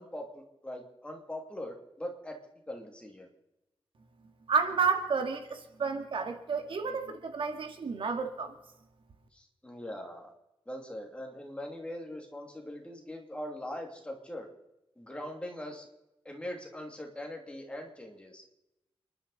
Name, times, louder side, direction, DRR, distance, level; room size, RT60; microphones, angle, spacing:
voice 1, 0.0-2.4 2.7-3.3 9.3-10.3 10.7-14.5 15.0-15.9 16.2-18.4, left 1 dB, 10° left, 1 dB, 2.9 m, -41 dB
voice 2, 4.5-8.6, right 5 dB, 70° right, 6 dB, 2.1 m, -31 dB
29.0 x 11.5 x 4.2 m, 0.93 s
wide cardioid pair, 175°, 9 cm